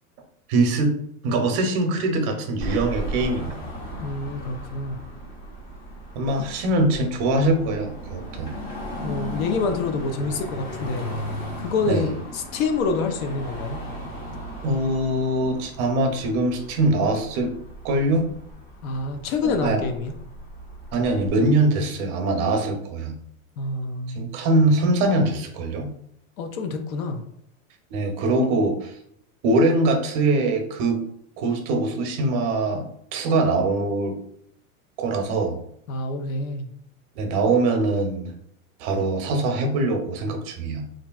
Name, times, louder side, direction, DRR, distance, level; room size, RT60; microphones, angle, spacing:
voice 1, 0.5-1.0 1.2-3.5 6.1-8.5 11.8-12.1 14.6-17.5 17.8-18.3 19.4-19.8 20.9-23.2 24.2-25.9 27.9-29.0 29.4-31.0 31.4-34.2 35.0-35.6 37.2-38.3 38.8-40.8, right 2 dB, 45° right, 5 dB, 0.7 m, -22 dB
Car passing by / Traffic noise roadway noise / Engine, 2.6-21.3, equal, 35° left, 1.0 m, -36 dB
voice 2, 4.0-5.0 6.3-6.4 9.0-11.1 11.6-13.8 18.8-20.1 23.6-24.4 26.4-27.2 35.9-36.7, left 3 dB, 70° left, 5 dB, 0.6 m, -27 dB
3.1 x 2.5 x 2.3 m, 0.69 s
supercardioid pair, 140°, 43 cm